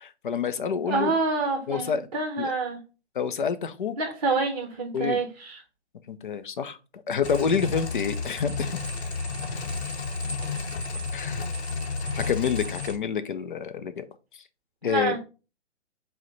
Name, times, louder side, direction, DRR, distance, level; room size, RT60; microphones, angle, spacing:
voice 1, 0.0-1.1 1.7-2.1 2.4-2.5 3.2-3.9 4.9-5.2 6.1-8.8 11.1-11.4 12.2-14.1 14.8-15.1, left 7 dB, 45° left, 11 dB, 0.5 m, -28 dB
voice 2, 0.8-2.8 4.0-5.6 14.8-15.2, right 3 dB, 35° right, 4 dB, 0.7 m, -27 dB
sound 1, 7.2-13.0, left 4 dB, 65° left, 0.9 m, -31 dB
4.7 x 2.2 x 3.9 m, 0.32 s
figure-of-eight pair, 145°, 35 cm